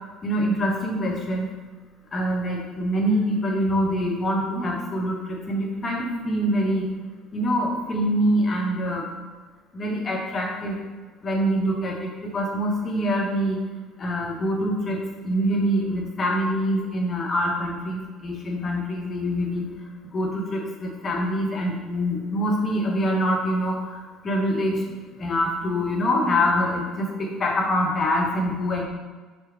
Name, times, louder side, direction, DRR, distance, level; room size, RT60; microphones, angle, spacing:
voice 1, 0.2-1.5 2.1-6.9 7.3-9.1 9.7-10.8 11.2-13.6 14.0-19.7 20.1-28.8, equal, 30° left, -1 dB, 1.0 m, -25 dB
4.8 x 2.2 x 4.4 m, 1.4 s
figure-of-eight pair, 55°, 0 cm